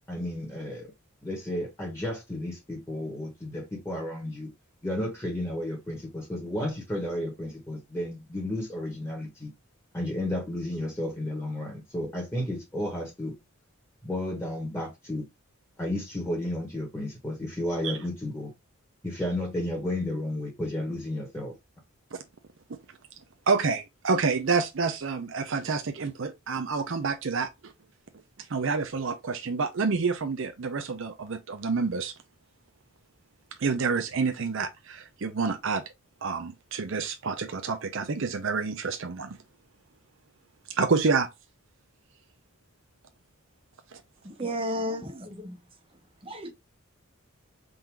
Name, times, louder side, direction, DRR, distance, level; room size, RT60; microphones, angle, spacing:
voice 1, 0.1-0.9 1.2-4.5 4.8-9.5 9.9-13.3 14.0-15.3 15.8-18.5 19.0-21.5, left 1 dB, 10° left, 1.1 m, -32 dB
voice 2, 23.5-27.7 28.5-32.1 33.6-35.8 36.2-39.4 40.7-41.3, right 4 dB, 60° right, 0.5 m, -28 dB
voice 3, 44.2-45.6 46.2-46.5, equal, 25° right, 0.8 m, -33 dB
3.8 x 2.6 x 4.6 m
head